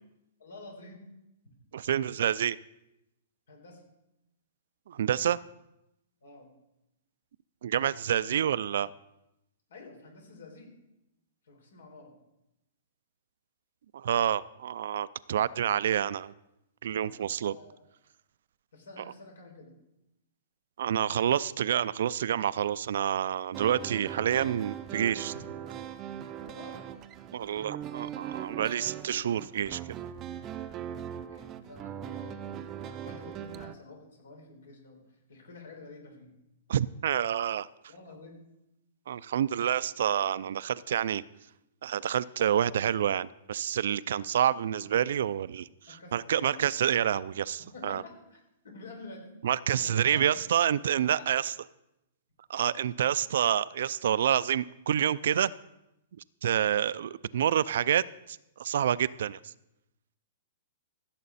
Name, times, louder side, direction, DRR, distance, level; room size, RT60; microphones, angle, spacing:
voice 1, 0.4-1.0 1.4-1.5 3.5-3.8 6.2-6.5 9.7-10.7 11.4-12.1 16.9-17.1 17.4-17.8 18.7-19.7 25.3-25.4 26.4-26.9 31.3-32.5 32.8-36.4 37.8-38.4 45.9-46.6 47.6-49.3 49.7-50.4 51.2-51.3, left 3 dB, 85° left, 2 dB, 4.2 m, -49 dB
voice 2, 1.7-2.6 4.9-5.4 7.6-8.9 13.9-16.3 16.8-17.6 20.8-25.3 27.3-29.8 36.7-37.7 39.1-41.2 41.8-45.7 46.1-48.0 49.4-51.5 52.5-55.5 56.4-59.5, right 9 dB, 70° right, 19 dB, 0.4 m, -28 dB
sound 1, 23.5-33.7, right 10 dB, 25° right, 0.6 m, -40 dB
16.0 x 7.6 x 4.2 m, 0.89 s
hypercardioid pair, 145°, 0 cm